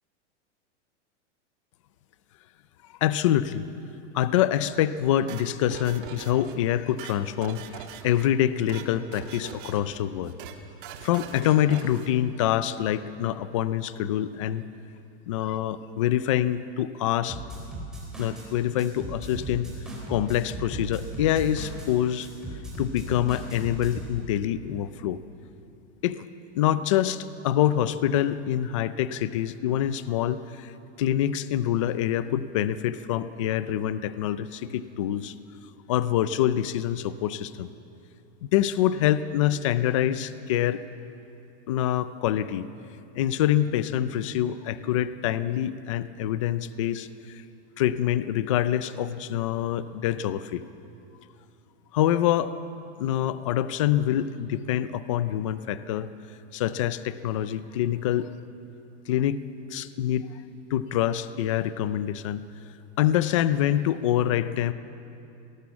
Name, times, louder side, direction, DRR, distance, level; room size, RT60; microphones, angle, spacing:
voice 1, 3.0-3.7 4.1-10.3 11.0-14.7 15.3-17.4 18.2-19.7 20.1-22.3 22.8-25.2 26.0-26.2 26.6-30.7 31.0-35.3 35.9-37.7 38.5-40.8 41.7-42.7 43.1-47.4 47.8-50.6 51.9-52.5 53.0-56.1 56.5-58.3 59.1-59.4 59.7-60.3 60.7-62.4 63.0-64.7, left 11 dB, 30° left, 14 dB, 0.4 m, -25 dB
sound 1, 5.3-6.5 6.8-8.2 8.5-8.9 9.1-10.0 10.2-10.6 10.8-12.1, right 9 dB, 45° right, 1.7 m, -42 dB
sound 2, 17.3-18.5 18.8-21.9 22.2-24.1, right 1 dB, ahead, 3.9 m, -37 dB
24.0 x 19.0 x 7.1 m, 2.7 s
supercardioid pair, 175°, 36 cm